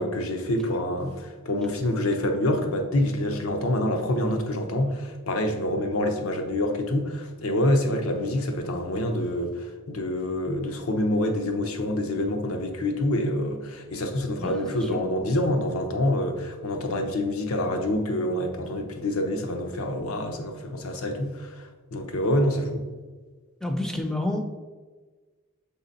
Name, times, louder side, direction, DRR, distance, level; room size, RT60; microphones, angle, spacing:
voice 1, 0.0-22.8, left 1 dB, 75° left, 4 dB, 0.8 m, -26 dB
voice 2, 14.4-15.0 23.6-24.5, left 1 dB, 5° left, 4 dB, 0.5 m, -29 dB
7.3 x 3.9 x 4.0 m, 1.4 s
head